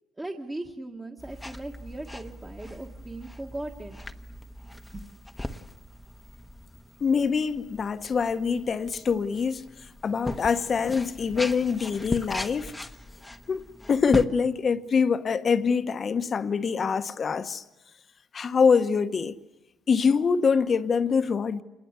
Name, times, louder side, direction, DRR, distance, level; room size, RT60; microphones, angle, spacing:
voice 1, 0.2-4.0 4.9-5.0, right 2 dB, 15° right, 1.6 m, -38 dB
sound 1, 1.2-14.3, left 1 dB, 10° left, 1.1 m, -39 dB
voice 2, 7.0-9.7 10.0-12.7 13.5-13.6 13.9-17.6 18.3-19.4 19.9-21.6, left 5 dB, 40° left, 1.1 m, -24 dB
26.5 x 20.5 x 8.2 m
cardioid pair, 105°, 0 cm